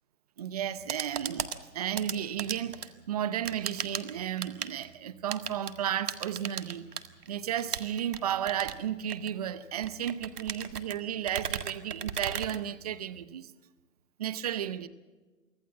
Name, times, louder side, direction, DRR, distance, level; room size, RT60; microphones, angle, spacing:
voice 1, 0.4-1.5 1.7-6.9 7.3-13.5 14.2-14.9, right 10 dB, 25° right, 0.7 m, -33 dB
sound 1, 0.6-13.2, right 7 dB, 70° right, 1.9 m, -38 dB
24.5 x 15.0 x 7.3 m
hypercardioid pair, 155°, 47 cm